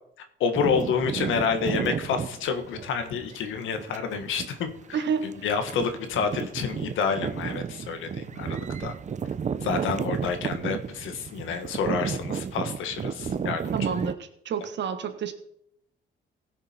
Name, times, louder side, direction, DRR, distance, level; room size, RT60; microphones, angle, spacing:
voice 1, 0.2-8.9 9.6-14.1, left 6 dB, 80° left, 8 dB, 1.6 m, -29 dB
sound 1, 0.5-14.1, right 7 dB, 35° right, 0.6 m, -33 dB
voice 2, 4.9-5.4 13.7-14.1 14.4-15.3, right 6 dB, 65° right, 8 dB, 1.5 m, -29 dB
16.5 x 6.8 x 4.4 m, 0.73 s
cardioid pair, 90°, 20 cm